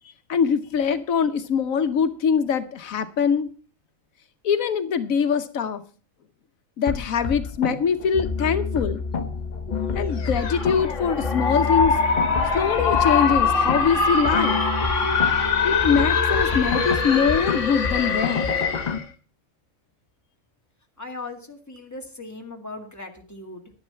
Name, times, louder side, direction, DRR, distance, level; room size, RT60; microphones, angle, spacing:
voice 1, 0.3-3.5 4.4-5.8 6.8-9.0 9.9-12.0 12.5-14.6 15.6-18.5, left 6 dB, 80° left, 10 dB, 1.2 m, -23 dB
sound 1, 6.9-19.0, left 5 dB, 35° left, 1.0 m, -29 dB
sound 2, 10.2-19.0, left 4 dB, 60° left, 1.8 m, -23 dB
voice 2, 21.0-23.7, left 3 dB, 10° left, 3 dB, 2.0 m, -38 dB
11.0 x 10.5 x 5.6 m, 0.38 s
omnidirectional pair, 1.4 m